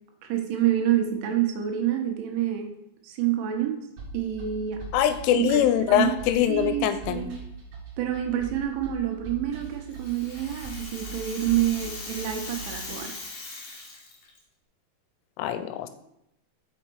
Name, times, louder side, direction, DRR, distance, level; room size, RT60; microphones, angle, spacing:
voice 1, 0.2-2.8 3.0-3.9 4.1-4.8 5.3-6.1 6.5-7.3 8.0-13.1, right 11 dB, 75° right, 4 dB, 3.1 m, -27 dB
sound 1, 4.0-12.9, right 4 dB, 55° right, 2.5 m, -41 dB
voice 2, 4.9-7.2 15.4-15.9, left 11 dB, 85° left, 9 dB, 3.1 m, -23 dB
Rattle (instrument), 9.6-14.4, left 3 dB, 70° left, 1.5 m, -40 dB
6.5 x 6.0 x 4.5 m, 0.81 s
omnidirectional pair, 5.7 m